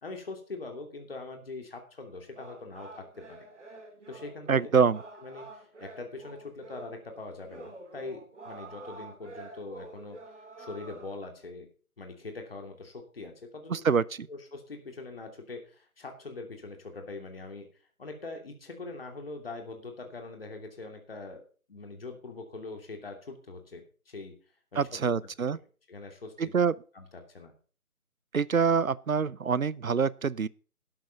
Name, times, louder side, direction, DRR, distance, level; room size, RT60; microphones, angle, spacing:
voice 1, 0.0-3.4 4.1-4.7 5.2-10.2 10.6-11.7 12.0-13.9 14.3-17.7 18.0-21.4 21.7-24.3 24.7-25.3 25.9-26.6 26.9-27.5, left 3 dB, 40° left, 2.9 m, -42 dB
sound 1, 2.3-11.2, right 2 dB, 50° right, 3.0 m, -48 dB
voice 2, 4.5-5.0 13.7-14.0 24.8-25.6 26.4-26.7 28.3-30.5, right 6 dB, 70° right, 0.7 m, -25 dB
12.5 x 11.0 x 4.0 m
figure-of-eight pair, 160°, 44 cm